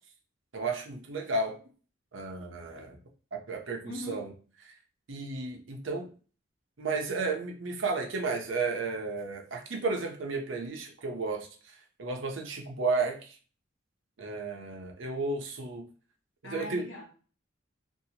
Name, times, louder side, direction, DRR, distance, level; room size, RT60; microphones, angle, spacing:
voice 1, 0.5-1.6 2.1-3.0 3.3-3.8 4.1-4.3 5.1-6.1 6.8-11.5 12.0-13.3 14.2-15.8 16.5-16.8, right 3 dB, 75° right, 2 dB, 0.7 m, -33 dB
voice 2, 3.8-4.3 16.4-17.0, left 2 dB, 70° left, 0 dB, 1.0 m, -40 dB
2.7 x 2.5 x 2.8 m, 0.40 s
head